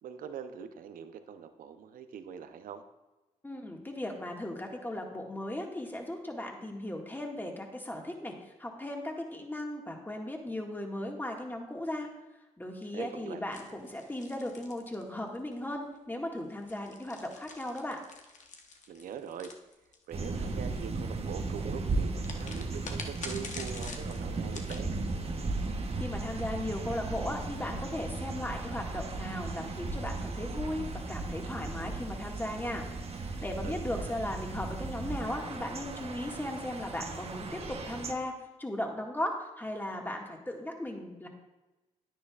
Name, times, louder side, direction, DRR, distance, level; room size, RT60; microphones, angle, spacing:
voice 1, 0.0-2.8 12.9-13.4 18.9-19.5 20.1-24.9 33.6-34.2, right 7 dB, 75° right, 9 dB, 0.7 m, -43 dB
voice 2, 3.4-8.3 8.6-12.1 12.6-18.0 26.0-32.8 33.4-38.3 38.6-41.3, left 1 dB, 15° left, 1 dB, 1.8 m, -37 dB
sound 1, 13.5-15.5 16.5-20.3 22.2-24.9, left 4 dB, 60° left, 1.1 m, -46 dB
sound 2, 20.1-38.1, right 3 dB, 45° right, 1.0 m, -36 dB
10.0 x 9.5 x 2.4 m, 1.1 s
supercardioid pair, 50°, 15 cm